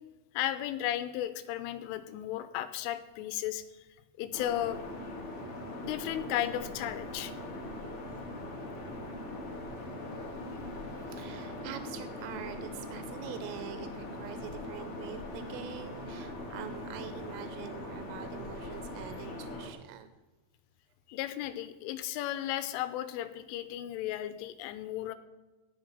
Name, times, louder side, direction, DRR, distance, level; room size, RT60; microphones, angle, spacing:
voice 1, 0.3-3.6 4.2-4.8 5.8-7.3 21.1-25.2, left 12 dB, 85° left, 12 dB, 3.2 m, -34 dB
sound 1, 4.3-19.7, left 1 dB, 55° left, 1.6 m, -41 dB
voice 2, 11.1-20.1, right 11 dB, 90° right, 10 dB, 3.3 m, -45 dB
18.0 x 6.0 x 5.7 m, 1.2 s
omnidirectional pair, 5.7 m